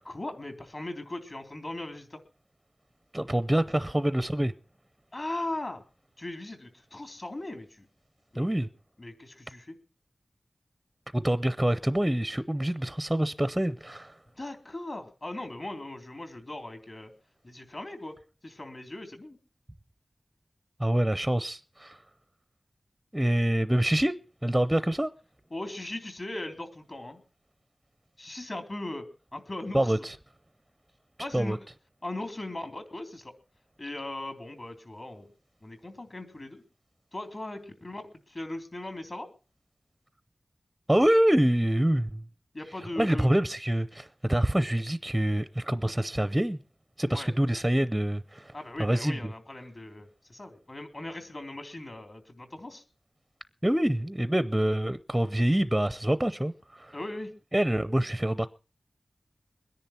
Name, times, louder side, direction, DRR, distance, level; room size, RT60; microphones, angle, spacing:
voice 1, 0.1-2.2 5.1-5.8 6.2-7.9 8.3-8.5 9.0-9.8 14.4-17.1 17.4-18.2 18.4-19.4 25.5-27.2 28.2-29.1 29.3-30.1 31.2-31.6 32.0-33.3 33.8-35.3 35.6-36.6 37.1-38.0 38.3-39.3 42.5-43.3 47.1-47.3 48.5-52.8 56.9-57.3, left 1 dB, 40° left, 3.5 m, -38 dB
voice 2, 3.1-4.5 8.4-8.7 11.1-14.1 20.8-22.0 23.1-24.2 24.4-25.1 29.7-30.1 31.3-31.6 40.9-42.2 43.0-46.6 47.0-48.5 48.8-49.2 53.6-57.0 57.5-58.5, right 1 dB, 10° right, 0.6 m, -26 dB
22.5 x 10.5 x 4.4 m
wide cardioid pair, 95°, 0 cm